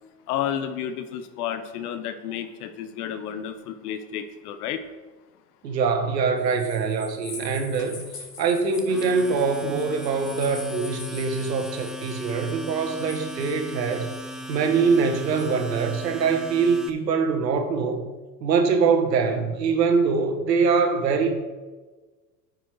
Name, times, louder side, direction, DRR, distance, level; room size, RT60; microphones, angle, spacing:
voice 1, 0.3-4.8, left 9 dB, 65° left, 10 dB, 1.0 m, -31 dB
voice 2, 5.6-8.0 8.4-14.1 14.5-18.0 18.4-21.3, right 5 dB, 80° right, 5 dB, 1.4 m, -23 dB
sound 1, 6.4-16.0, left 3 dB, 35° left, 2.7 m, -44 dB
Domestic sounds home sounds, 8.8-16.9, equal, ahead, 0.7 m, -39 dB
9.8 x 5.4 x 4.7 m, 1.3 s
hypercardioid pair, 80°, 50 cm